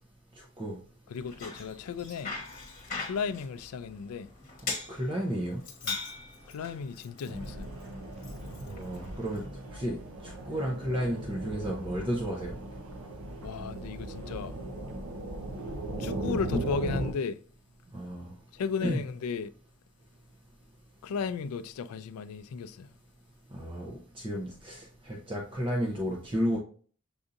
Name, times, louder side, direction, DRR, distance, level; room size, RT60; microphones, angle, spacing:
voice 1, 1.1-2.3 3.0-4.3 5.8-6.0 6.5-7.7 13.4-14.5 16.0-17.4 18.5-19.5 21.0-22.9, left 5 dB, 80° left, 0.3 m, -35 dB
Bicycle, 1.1-9.5, left 4 dB, 40° left, 1.1 m, -41 dB
voice 2, 4.7-5.6 8.6-9.4 9.7-10.0 10.2-12.6 16.2-16.6 17.9-18.3 18.8-19.0 23.5-26.6, equal, 25° right, 0.6 m, -32 dB
sound 1, 7.3-17.1, right 2 dB, 65° right, 0.6 m, -38 dB
6.8 x 2.6 x 2.5 m
head